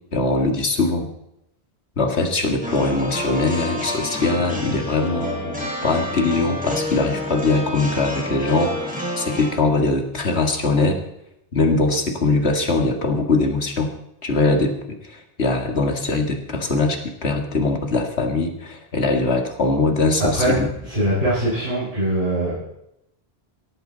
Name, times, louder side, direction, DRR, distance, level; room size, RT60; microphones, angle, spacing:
voice 1, 0.1-1.1 2.0-11.0 11.5-13.9 14.2-20.7, left 3 dB, 90° left, 4 dB, 2.3 m, -21 dB
sound 1, 2.6-9.5, left 1 dB, 5° right, 4.3 m, -29 dB
voice 2, 20.3-22.5, right 1 dB, 60° right, -10 dB, 7.2 m, -22 dB
17.0 x 14.5 x 4.1 m, 0.82 s
omnidirectional pair, 1.1 m